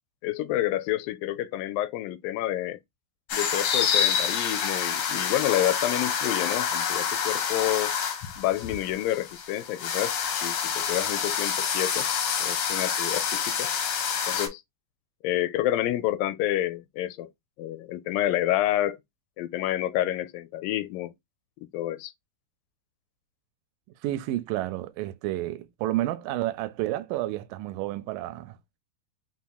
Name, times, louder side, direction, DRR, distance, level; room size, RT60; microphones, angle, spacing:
voice 1, 0.2-2.8 3.3-7.9 8.4-12.1 12.4-13.7 14.3-14.6 15.2-17.3 17.6-19.0 19.4-21.1 21.7-22.1, left 13 dB, 85° left, 2.2 m, -29 dB
sound 1, 3.3-14.5, left 7 dB, 65° left, 1.8 m, -28 dB
voice 2, 24.0-28.6, right 15 dB, 80° right, 2.1 m, -30 dB
4.6 x 4.2 x 2.2 m
omnidirectional pair, 4.0 m